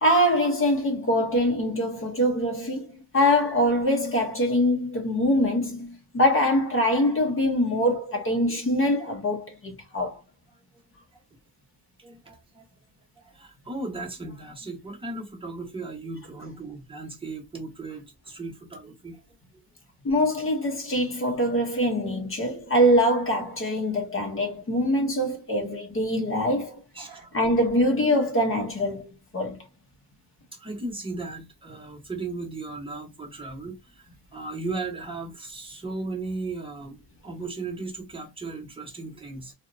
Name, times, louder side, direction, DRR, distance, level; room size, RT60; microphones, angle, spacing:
voice 1, 0.0-5.9 6.1-10.2 20.0-26.8 27.3-29.6, equal, 30° left, 0.6 m, -23 dB
voice 2, 12.0-12.7 13.2-19.2 19.5-19.6 26.9-27.4 30.5-39.5, right 3 dB, 10° right, 0.8 m, -36 dB
2.7 x 2.1 x 2.5 m
cardioid pair, 130°, 43 cm